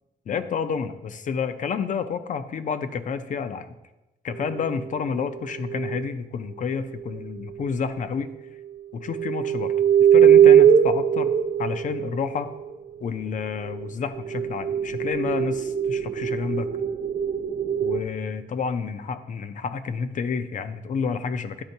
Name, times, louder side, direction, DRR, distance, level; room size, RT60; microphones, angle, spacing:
voice 1, 0.3-3.7 4.2-8.3 8.9-9.7 10.1-11.3 11.6-12.5 13.0-16.7 17.8-21.6, left 6 dB, 50° left, 11 dB, 0.5 m, -29 dB
sound 1, 4.3-6.1 7.6-7.7 9.1-12.7 13.6-18.0, right 9 dB, 40° right, 0.5 m, -21 dB
10.5 x 4.3 x 2.7 m, 1.0 s
cardioid pair, 105°, 17 cm